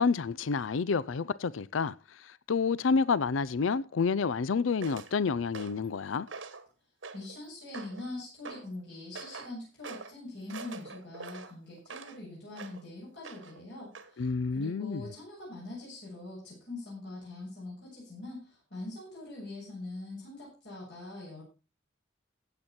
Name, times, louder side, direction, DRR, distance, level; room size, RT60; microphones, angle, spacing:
voice 1, 0.0-6.3 14.2-15.1, left 5 dB, 85° left, 0.5 m, -29 dB
sound 1, 4.8-5.1 5.5-5.9 6.3-6.7 7.0-7.4 7.7-8.1 8.5-8.7 9.2-9.5 9.8-10.1 10.5-12.2 12.5-12.8 13.2-13.6 14.0-14.1, right 4 dB, 85° right, 1.4 m, -44 dB
voice 2, 7.1-14.3 14.5-21.4, left 2 dB, 65° left, 7.1 m, -43 dB
15.5 x 8.7 x 4.3 m
head